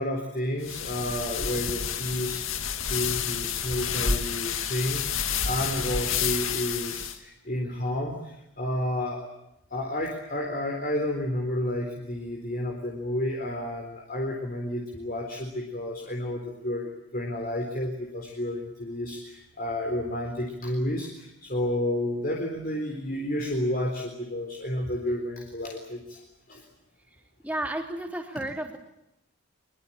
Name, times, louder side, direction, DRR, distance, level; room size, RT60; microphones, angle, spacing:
voice 1, 0.0-2.5 2.9-9.3 9.7-26.2 26.5-26.6, left 1 dB, 40° left, 1 dB, 4.0 m, -31 dB
sound 1, 0.6-7.2, left 7 dB, 75° left, 2.3 m, -30 dB
voice 2, 27.4-28.8, right 1 dB, 5° right, 2 dB, 3.5 m, -32 dB
24.0 x 23.0 x 8.8 m, 0.84 s
head